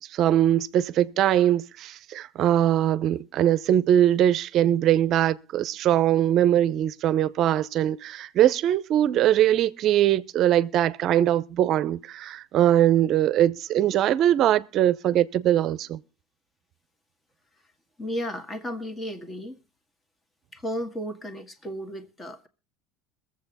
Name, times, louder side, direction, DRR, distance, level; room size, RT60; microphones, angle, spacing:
voice 1, 0.1-16.0, right 11 dB, 55° right, 0.6 m, -21 dB
voice 2, 18.0-19.6 20.5-22.5, equal, 20° left, 1.7 m, -34 dB
21.5 x 7.6 x 4.0 m
supercardioid pair, 100°, 0 cm